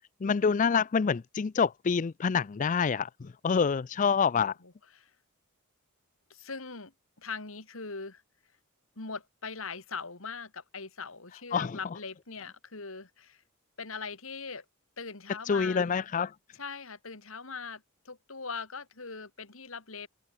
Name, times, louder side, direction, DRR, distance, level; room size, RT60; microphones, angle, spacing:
voice 1, 0.2-4.6 11.5-11.8 15.4-16.3, left 6 dB, 35° left, 0.4 m, -27 dB
voice 2, 4.3-5.1 6.3-6.9 7.2-8.2 9.0-13.4 13.8-14.6 15.0-15.9 16.6-20.1, left 4 dB, 65° left, 2.4 m, -41 dB
head